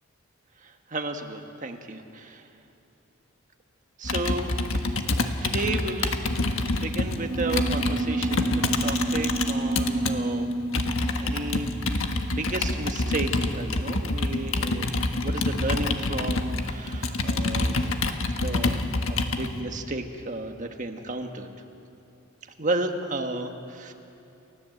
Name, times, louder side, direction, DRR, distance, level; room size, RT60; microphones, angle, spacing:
voice 1, 0.6-2.4 4.0-6.2 6.7-10.5 11.2-11.8 12.3-14.9 15.2-17.9 18.4-18.8 19.1-21.5 22.6-23.9, right 2 dB, 40° right, 5 dB, 1.5 m, -33 dB
Computer keyboard, 4.0-10.1 10.7-19.5, left 2 dB, 75° left, 1.5 m, -27 dB
sound 1, 7.1-13.0, right 2 dB, 15° right, 4.2 m, -29 dB
29.0 x 15.0 x 7.9 m, 2.8 s
head